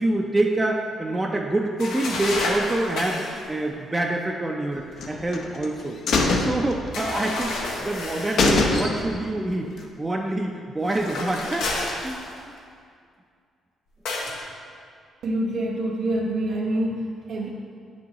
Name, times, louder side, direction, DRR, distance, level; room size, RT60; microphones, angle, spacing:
voice 1, 0.0-6.0 6.3-11.7 12.0-12.5, right 2 dB, 20° right, 0 dB, 0.5 m, -26 dB
sound 1, 1.8-3.4 6.9-8.5 10.8-12.6 14.1-14.4, left 2 dB, 90° left, 1.0 m, -30 dB
sound 2, 5.0-5.7 6.1-7.4 7.7-7.8 8.1-8.2 8.4-9.3 9.6-9.7, left 3 dB, 65° left, 0.7 m, -23 dB
voice 2, 15.2-17.5, right 1 dB, 75° right, -4 dB, 0.7 m, -26 dB
8.4 x 6.1 x 3.0 m, 2.2 s
cardioid pair, 90°, 0 cm